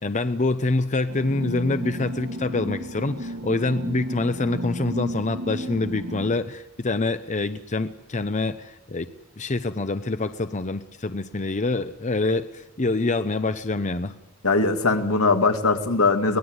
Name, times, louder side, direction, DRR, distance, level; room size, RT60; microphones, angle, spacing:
voice 1, 0.0-9.1 9.4-14.1, left 2 dB, 35° left, 11 dB, 0.8 m, -26 dB
sound 1, 1.1-6.4, equal, 75° right, 2.4 m, -33 dB
voice 2, 14.4-16.4, left 3 dB, 85° left, 6 dB, 2.2 m, -20 dB
23.5 x 19.5 x 8.0 m, 0.91 s
head